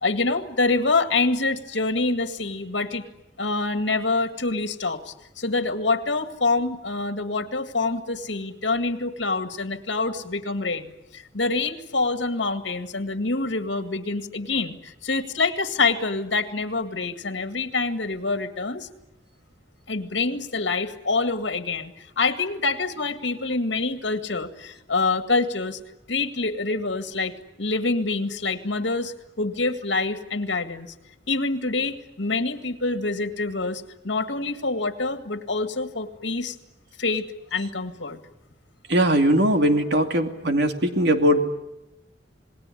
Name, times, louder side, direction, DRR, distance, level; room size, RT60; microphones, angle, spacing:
voice 1, 0.0-3.1 3.4-18.9 19.9-21.9 22.2-25.8 26.1-27.3 27.6-30.9 31.3-36.5 37.0-38.2, left 3 dB, 75° left, 8 dB, 2.0 m, -26 dB
voice 2, 38.9-41.4, right 1 dB, 65° right, 6 dB, 2.6 m, -20 dB
28.0 x 20.0 x 10.0 m, 0.92 s
head